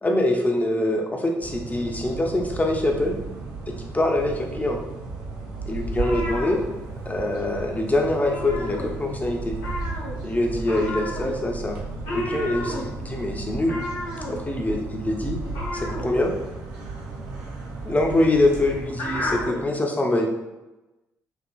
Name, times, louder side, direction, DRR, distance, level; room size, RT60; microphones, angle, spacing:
voice 1, 0.0-3.2 3.9-4.8 5.7-6.6 7.1-9.6 10.2-11.8 12.1-13.8 14.3-15.4 15.7-16.3 17.8-20.4, left 1 dB, 20° left, 2 dB, 0.6 m, -24 dB
sound 1, 1.4-19.5, right 3 dB, 70° right, 0.5 m, -35 dB
sound 2, 5.8-7.3 7.6-7.8 8.1-9.2 9.6-19.7, left 1 dB, 75° left, 0.8 m, -33 dB
2.8 x 2.6 x 2.3 m, 1.1 s
figure-of-eight pair, 40°, 8 cm